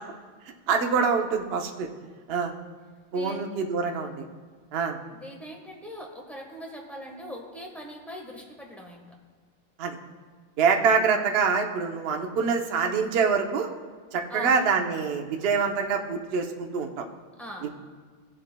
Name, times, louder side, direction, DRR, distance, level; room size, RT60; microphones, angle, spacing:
voice 1, 0.7-1.9 2.3-2.5 3.1-4.2 4.7-5.0 9.8-10.0 10.6-13.7 14.1-17.0 17.6-17.7, right 5 dB, 80° right, 3 dB, 0.5 m, -25 dB
voice 2, 3.1-3.5 5.1-9.0 14.3-14.6 17.4-17.7, equal, ahead, 0 dB, 0.8 m, -41 dB
17.5 x 7.6 x 2.2 m, 1.5 s
omnidirectional pair, 2.1 m